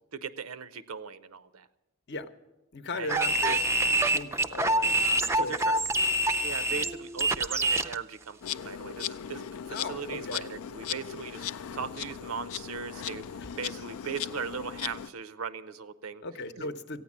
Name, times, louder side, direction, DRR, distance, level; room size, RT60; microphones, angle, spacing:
voice 1, 0.1-1.7 3.0-3.3 5.4-5.8 6.4-11.5 11.7-16.2 16.6-16.7, right 6 dB, 90° right, 14 dB, 0.6 m, -38 dB
voice 2, 2.7-3.6 4.1-5.8 6.7-6.9 9.7-10.4 13.4-13.5 16.2-17.0, left 2 dB, 55° left, 9 dB, 0.8 m, -38 dB
sound 1, 3.1-7.9, right 2 dB, 15° right, 0.4 m, -26 dB
Insect, 8.4-15.1, left 9 dB, 80° left, 0.4 m, -38 dB
15.0 x 9.5 x 7.3 m, 1.0 s
head